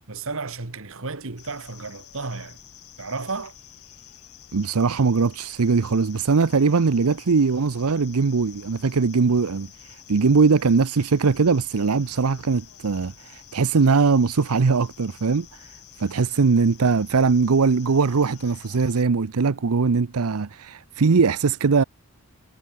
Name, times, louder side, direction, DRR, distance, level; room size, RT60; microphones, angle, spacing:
voice 1, 0.1-2.6 3.0-3.5, right 3 dB, 65° right, 1.7 m, -33 dB
sound 1, 1.4-19.0, left 11 dB, 85° left, 2.2 m, -49 dB
voice 2, 4.5-21.8, right 4 dB, 80° right, 0.7 m, -21 dB
head